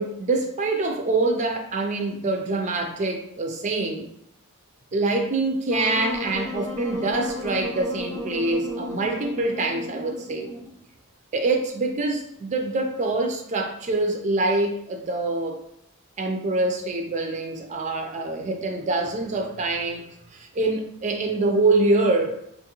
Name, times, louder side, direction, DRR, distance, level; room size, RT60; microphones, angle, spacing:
voice 1, 0.0-4.1 4.9-10.5 11.3-15.6 16.2-20.0 20.3-22.3, right 2 dB, 30° right, 3 dB, 0.4 m, -25 dB
Wind instrument woodwind instrument, 5.7-10.8, left 2 dB, 15° left, 0.7 m, -33 dB
4.3 x 2.3 x 2.9 m, 0.74 s
head